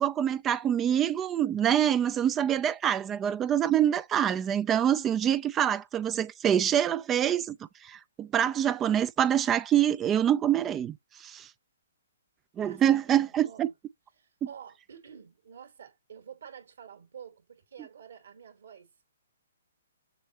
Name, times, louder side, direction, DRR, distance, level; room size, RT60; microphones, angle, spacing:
voice 1, 0.0-7.6 7.8-11.5 12.6-13.7, right 10 dB, 20° right, 0.4 m, -25 dB
voice 2, 12.6-13.7 14.2-19.1, right 8 dB, 70° right, 2.9 m, -49 dB
6.8 x 5.2 x 3.1 m
hypercardioid pair, 135°, 0 cm